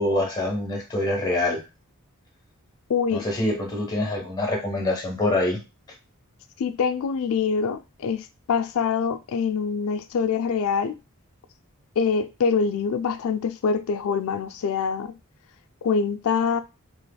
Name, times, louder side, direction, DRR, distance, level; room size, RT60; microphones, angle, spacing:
voice 1, 0.0-1.6 3.1-5.6, left 1 dB, 20° left, 1.0 m, -25 dB
voice 2, 2.9-3.3 6.6-10.9 12.0-15.1 15.8-16.6, left 6 dB, 65° left, 0.4 m, -25 dB
3.2 x 3.0 x 2.3 m
head